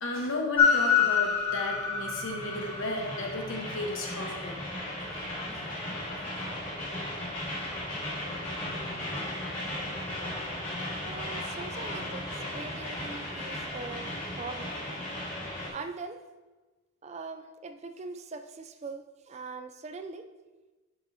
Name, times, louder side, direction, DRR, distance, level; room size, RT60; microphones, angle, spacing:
voice 1, 0.0-4.6, left 2 dB, 75° left, 1 dB, 1.2 m, -34 dB
Train, 0.6-15.7, left 4 dB, 35° left, 2.6 m, -32 dB
voice 2, 11.0-14.8 15.7-16.2 17.0-20.3, right 3 dB, 30° right, 8 dB, 0.4 m, -42 dB
11.5 x 5.1 x 2.7 m, 1.2 s
head